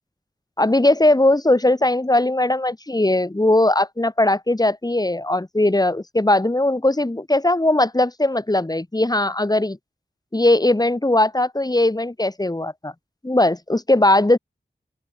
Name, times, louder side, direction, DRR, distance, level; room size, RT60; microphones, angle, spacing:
voice 1, 0.6-9.8 10.3-12.9 13.2-14.4, left 1 dB, 20° left, 2.4 m, -19 dB
open air
wide cardioid pair, 50°, 19 cm